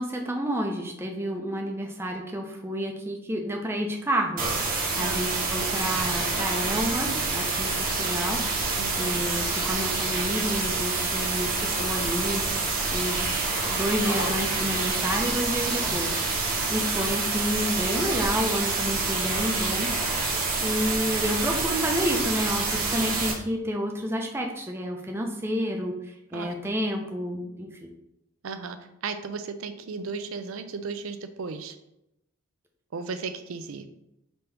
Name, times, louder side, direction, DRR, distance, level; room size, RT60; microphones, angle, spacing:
voice 1, 0.0-12.4 12.9-19.9 20.6-27.9, equal, 10° right, 1 dB, 0.5 m, -30 dB
sound 1, 4.4-23.3, right 3 dB, 40° right, 1.0 m, -27 dB
sound 2, 7.3-15.2 16.4-17.2, left 1 dB, 85° left, 1.6 m, -43 dB
voice 2, 8.8-9.2 16.3-16.4 16.9-17.1 26.3-26.5 28.4-28.8 29.0-31.8 32.9-33.8, right 5 dB, 75° right, 9 dB, 0.5 m, -35 dB
5.4 x 2.9 x 3.3 m, 0.85 s
head